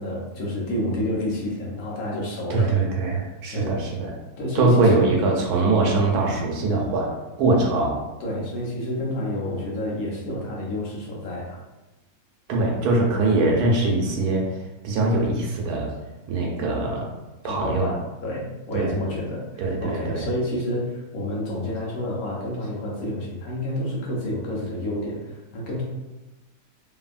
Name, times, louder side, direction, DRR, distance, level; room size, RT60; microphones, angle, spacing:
voice 1, 0.0-2.8 3.5-3.8 4.4-5.1 8.2-11.6 17.4-25.8, left 1 dB, 65° left, -3 dB, 1.1 m, -29 dB
voice 2, 2.5-4.1 4.5-7.1 7.4-8.0 12.5-14.5 14.8-15.9 16.3-17.1 17.4-17.9 18.7-18.9 19.6-20.3, right 2 dB, 75° right, -1 dB, 1.1 m, -22 dB
2.7 x 2.7 x 2.4 m, 1.0 s
omnidirectional pair, 1.8 m